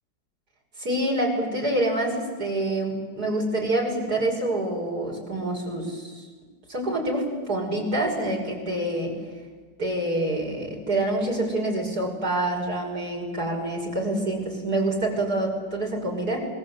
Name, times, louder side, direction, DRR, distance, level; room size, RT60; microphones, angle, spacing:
voice 1, 0.8-6.3 6.7-9.1 9.8-16.5, right 1 dB, 50° right, 0 dB, 6.3 m, -26 dB
26.0 x 22.0 x 8.2 m, 1.4 s
omnidirectional pair, 2.1 m